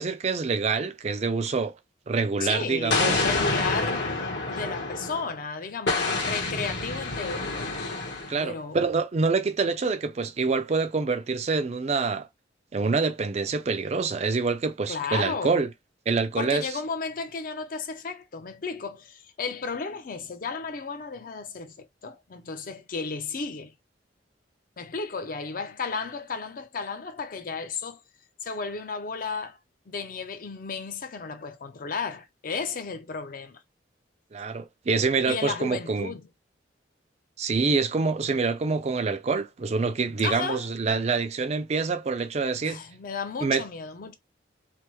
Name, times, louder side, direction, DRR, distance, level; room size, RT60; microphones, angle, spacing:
voice 1, 0.0-1.8 2.1-3.2 8.3-12.3 12.7-15.7 16.1-16.6 34.3-36.1 37.4-42.8 43.4-43.6, right 4 dB, 35° right, 0.4 m, -26 dB
voice 2, 2.4-4.1 4.5-7.7 8.4-8.8 14.9-15.6 16.4-23.7 24.8-28.0 28.4-29.6 29.9-33.6 35.3-36.2 40.2-40.7 42.6-44.1, left 4 dB, 50° left, 0.5 m, -33 dB
Explosion, 2.9-5.3 5.9-8.4, left 3 dB, 70° left, 1.2 m, -28 dB
3.3 x 2.0 x 3.0 m
head